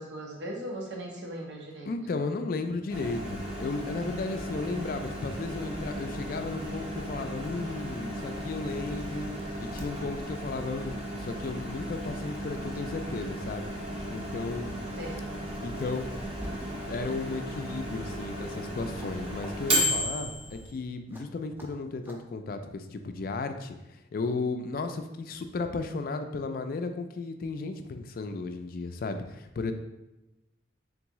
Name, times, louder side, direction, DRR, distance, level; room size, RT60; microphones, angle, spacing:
voice 1, 0.0-1.9 15.0-15.4, right 1 dB, 80° right, 0 dB, 0.8 m, -38 dB
voice 2, 1.9-9.3 9.6-13.7 14.1-14.8 15.6-16.1 16.9-29.7, left 3 dB, 50° left, 7 dB, 0.3 m, -34 dB
Microwave oven, 2.9-20.7, equal, 30° right, 0.8 m, -35 dB
sound 1, 5.7-6.7 7.2-7.3 8.2-8.3 8.6-9.9 11.2-11.4 11.8-12.8 13.2-16.7 18.9-19.2 19.4-19.5 19.9-20.0 21.1-21.2 21.6-21.7 22.0-22.2, equal, 10° right, 0.5 m, -47 dB
3.9 x 3.5 x 3.0 m, 0.98 s
head